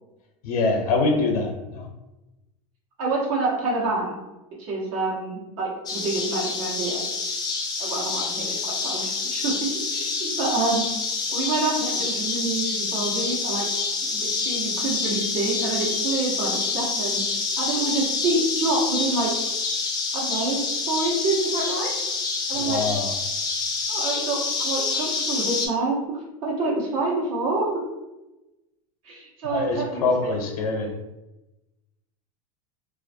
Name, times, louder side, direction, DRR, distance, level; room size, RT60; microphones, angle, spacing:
voice 1, 0.4-1.9 22.5-23.1 29.4-30.9, left 3 dB, 80° left, 3 dB, 0.6 m, -24 dB
voice 2, 3.0-4.2 4.6-7.0 7.3-7.4 7.8-10.9 11.3-13.7 14.0-17.2 17.6-19.3 20.1-21.9 22.5-22.8 23.9-27.7 29.0-30.1, right 3 dB, 70° right, -4 dB, 1.1 m, -27 dB
sound 1, 5.9-25.7, left 4 dB, 20° left, 0.4 m, -27 dB
2.4 x 2.2 x 2.6 m, 0.99 s
supercardioid pair, 120°, 19 cm